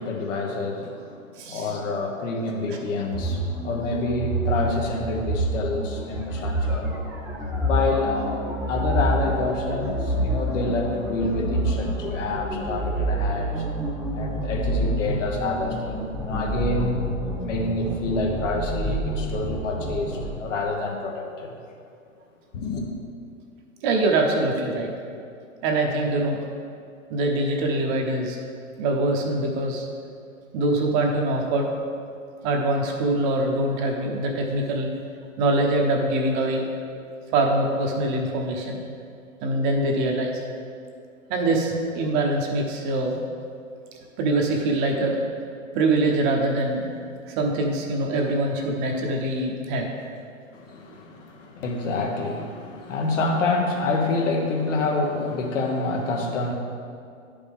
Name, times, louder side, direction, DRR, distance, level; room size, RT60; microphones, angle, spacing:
voice 1, 0.0-6.9 7.6-13.6 14.1-17.1 17.4-21.5 22.5-22.8 50.5-56.5, left 3 dB, 65° left, 1 dB, 1.4 m, -27 dB
sound 1, 3.1-20.3, right 1 dB, ahead, 1.1 m, -27 dB
voice 2, 23.8-24.9 25.6-26.4 27.1-28.4 28.8-29.9 30.5-31.7 32.4-34.9 35.4-36.6 37.3-38.8 39.4-40.4 41.3-43.2 44.2-45.2 45.7-46.8 47.3-49.9, right 2 dB, 35° right, 1 dB, 1.0 m, -23 dB
10.0 x 5.2 x 3.6 m, 2.4 s
hypercardioid pair, 120°, 41 cm